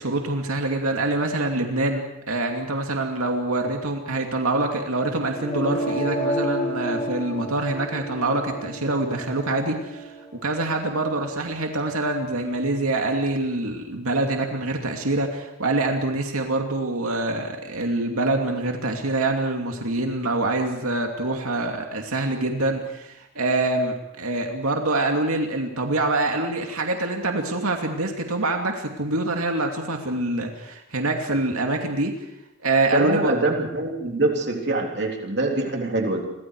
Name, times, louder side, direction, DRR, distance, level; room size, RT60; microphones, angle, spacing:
voice 1, 0.0-10.1 10.4-32.1 32.6-33.3, right 2 dB, 90° right, 3 dB, 2.6 m, -25 dB
sound 1, 5.3-11.2, right 1 dB, 25° left, 2.6 m, -31 dB
voice 2, 32.9-36.3, right 2 dB, 50° right, 1 dB, 3.4 m, -24 dB
30.0 x 23.5 x 4.8 m, 0.86 s
head